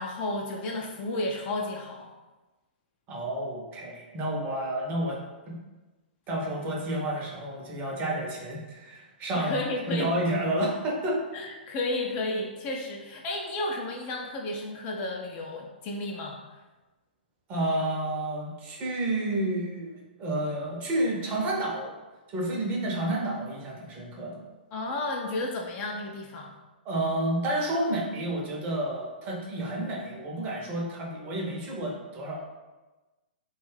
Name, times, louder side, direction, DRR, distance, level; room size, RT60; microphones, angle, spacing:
voice 1, 0.0-2.1 9.3-10.1 11.3-16.6 24.7-26.5, left 2 dB, 30° left, 0 dB, 0.4 m, -32 dB
voice 2, 3.1-5.2 5.5-5.6 6.3-9.6 9.9-11.2 17.5-21.9 22.3-24.4 26.8-32.4, right 1 dB, 30° right, -2 dB, 0.7 m, -30 dB
2.6 x 2.2 x 3.2 m, 1.2 s
figure-of-eight pair, 115°, 6 cm